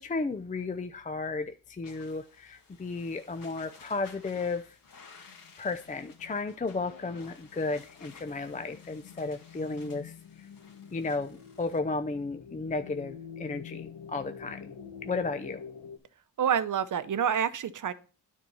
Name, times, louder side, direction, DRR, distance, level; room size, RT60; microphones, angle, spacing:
voice 1, 0.0-4.8 5.6-10.5 10.9-14.7 15.0-15.6, left 3 dB, 20° left, 9 dB, 0.5 m, -34 dB
sound 1, 1.8-11.8, left 5 dB, 60° left, 2.0 m, -55 dB
sound 2, 5.2-16.0, left 7 dB, 80° left, 1.4 m, -47 dB
voice 2, 16.4-17.9, right 8 dB, 50° right, 14 dB, 0.8 m, -27 dB
9.8 x 4.5 x 5.4 m, 0.37 s
cardioid pair, 95°, 39 cm